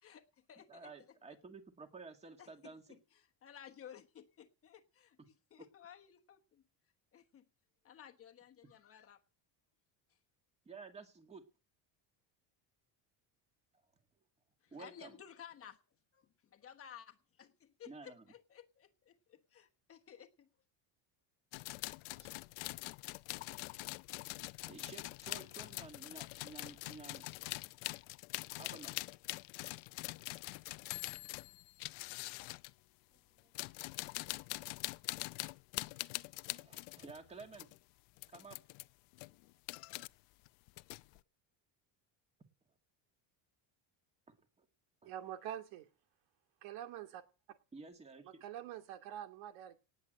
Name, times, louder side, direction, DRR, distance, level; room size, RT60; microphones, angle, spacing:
voice 1, 0.0-1.2 2.4-6.6 7.1-7.4 7.8-9.2 14.6-15.8 16.1-20.5, left 9 dB, 30° left, 1.2 m, -56 dB
voice 2, 0.7-3.0 5.2-5.3 10.7-11.4 14.7-15.2 17.9-18.2 22.2-22.3 24.7-27.3 28.6-29.0 33.1-33.5 36.4-37.7 38.3-38.6 44.3-44.7 45.0-45.1 47.7-48.4, right 4 dB, 15° right, 2.0 m, -53 dB
sound 1, 21.5-32.7 33.4-37.8 38.2-38.9 39.1-40.1 40.5-41.2, left 24 dB, 90° left, 0.7 m, -44 dB
voice 3, 45.0-45.9 46.6-47.2 48.2-49.8, right 11 dB, 80° right, 2.6 m, -45 dB
18.5 x 8.0 x 7.8 m
cardioid pair, 180°, 48 cm